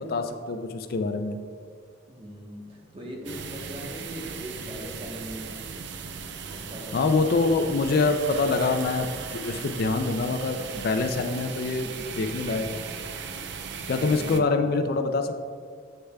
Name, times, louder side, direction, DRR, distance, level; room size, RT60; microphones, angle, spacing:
voice 1, 0.0-1.4 6.9-12.8 13.9-15.5, left 3 dB, 50° left, 7 dB, 0.4 m, -25 dB
voice 2, 2.1-5.6 6.6-7.0 11.8-12.0 14.0-14.6, equal, 30° right, -1 dB, 1.1 m, -40 dB
sound 1, 3.2-14.4, right 6 dB, 60° right, 0.4 m, -37 dB
7.9 x 6.6 x 2.3 m, 2.1 s
head